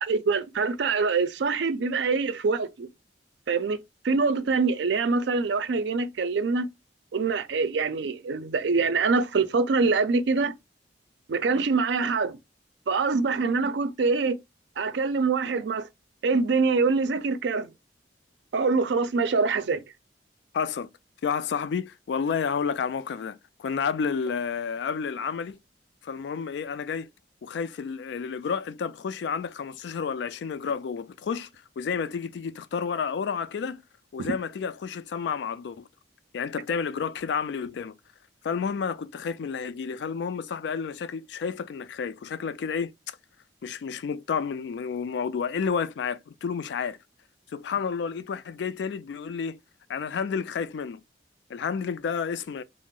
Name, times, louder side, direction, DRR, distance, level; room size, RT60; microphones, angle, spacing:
voice 1, 0.0-2.9 3.5-3.8 4.0-6.7 7.1-10.5 11.3-12.4 12.9-14.4 14.8-15.9 16.2-17.7 18.5-19.8 34.2-34.3, right 4 dB, 75° right, 0.4 m, -24 dB
voice 2, 20.5-20.9 21.2-25.6 26.0-27.1 27.4-31.5 31.8-33.8 34.1-35.9 36.3-38.0 38.4-43.2 43.6-47.0 47.5-49.6 49.9-51.0 51.5-52.6, left 6 dB, 70° left, 0.3 m, -30 dB
2.7 x 2.0 x 3.6 m
head